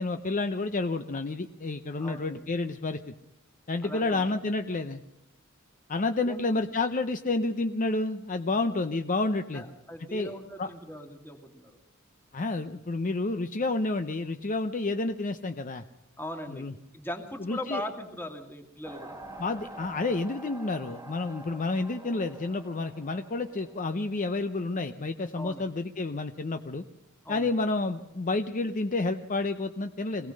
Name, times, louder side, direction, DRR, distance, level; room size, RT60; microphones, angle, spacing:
voice 1, 0.0-3.1 3.7-5.0 5.9-9.6 10.1-10.3 10.6-10.7 12.3-15.8 16.5-16.7 17.4-17.8 19.4-26.8 27.3-30.3, left 3 dB, 40° left, 8 dB, 0.7 m, -30 dB
voice 2, 2.0-2.6 3.8-4.3 6.3-6.6 9.5-11.8 16.2-19.2 25.4-25.7 27.2-27.6, left 1 dB, 10° left, 4 dB, 2.2 m, -40 dB
sound 1, 18.8-24.9, right 1 dB, 15° right, 2.0 m, -47 dB
23.0 x 17.5 x 6.5 m, 0.87 s
head